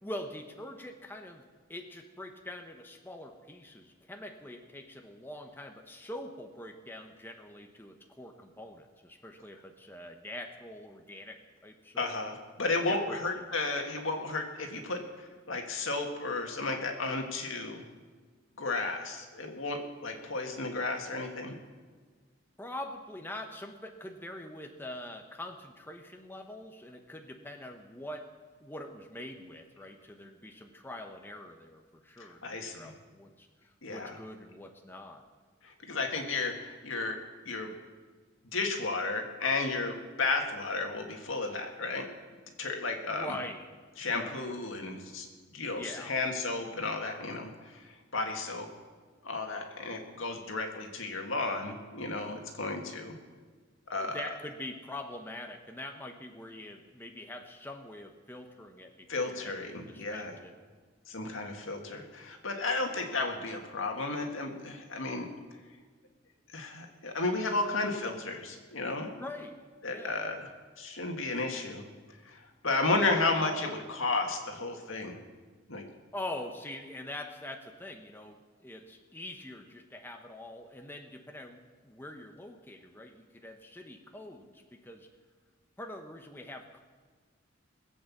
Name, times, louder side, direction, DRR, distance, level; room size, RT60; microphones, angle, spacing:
voice 1, 0.0-1.4 1.7-12.2 12.9-13.5 22.6-28.2 28.6-33.5 33.9-35.2 43.1-43.7 44.0-44.3 45.7-46.1 54.0-60.5 69.2-69.6 69.9-70.2 76.1-85.1 85.8-86.8, left 1 dB, 10° left, 4 dB, 0.9 m, -44 dB
voice 2, 12.0-17.8 18.6-21.6 32.2-32.9 33.8-34.2 35.6-37.2 37.5-37.7 38.5-42.1 42.6-43.4 44.0-45.3 45.5-48.7 49.2-53.1 53.9-54.3 59.1-60.4 61.1-65.3 66.5-69.1 69.8-70.5 70.8-71.9 72.3-75.2 75.7-75.9, left 3 dB, 80° left, 3 dB, 1.9 m, -33 dB
20.5 x 8.0 x 7.2 m, 1.5 s
head